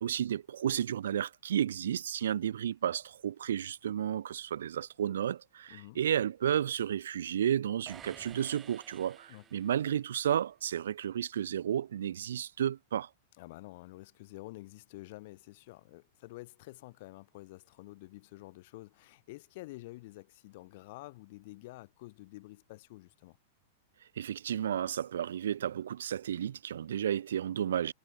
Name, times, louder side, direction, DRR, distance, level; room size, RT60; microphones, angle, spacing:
voice 1, 0.0-13.1 24.2-27.9, right 9 dB, 85° right, 0.9 m, -32 dB
voice 2, 5.7-6.0 9.3-9.4 13.4-23.4, left 20 dB, 55° left, 3.8 m, -49 dB
sound 1, 7.9-10.1, right 8 dB, 20° right, 5.3 m, -53 dB
hypercardioid pair, 135°, 0 cm